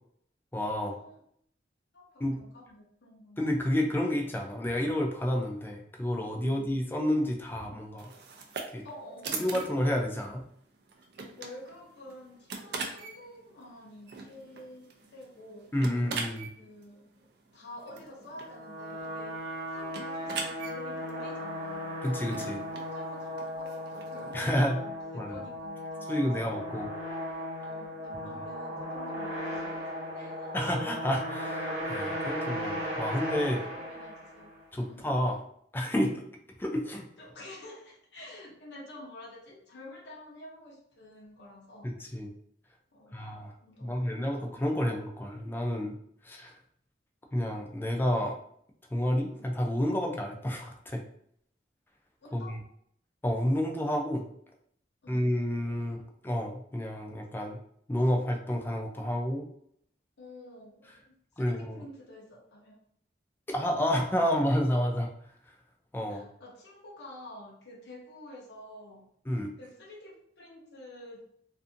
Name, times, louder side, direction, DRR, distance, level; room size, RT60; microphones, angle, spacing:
voice 1, 0.5-1.0 2.2-2.4 3.4-8.1 8.7-8.8 9.3-10.4 15.7-16.5 22.0-22.6 24.3-24.8 25.1-25.3 26.1-26.9 28.1-28.3 30.5-33.6 34.7-35.4 35.7-36.2 36.6-37.1 41.8-42.3 43.1-43.5 43.8-46.0 46.2-46.6 47.3-48.4 48.9-51.0 52.3-52.6 53.2-54.2 55.1-57.6 57.9-59.5 61.4-61.8 63.5-65.1 65.9-66.3 69.3-69.5, equal, 10° left, 2 dB, 0.3 m, -30 dB
voice 2, 1.9-3.5 6.5-6.7 8.8-9.6 11.4-15.7 16.5-19.4 19.7-21.9 22.4-26.3 27.6-30.7 33.6-34.5 34.8-35.1 37.2-42.0 42.9-43.3 43.6-44.4 49.3-49.5 52.2-52.6 55.0-55.3 60.2-62.8 66.1-69.1 69.6-71.2, left 1 dB, 65° left, -3 dB, 0.6 m, -49 dB
sound 1, 8.0-24.5, right 4 dB, 60° right, 0.4 m, -43 dB
sound 2, 18.3-34.6, equal, 40° right, 0.9 m, -36 dB
2.6 x 2.5 x 2.5 m, 0.67 s
head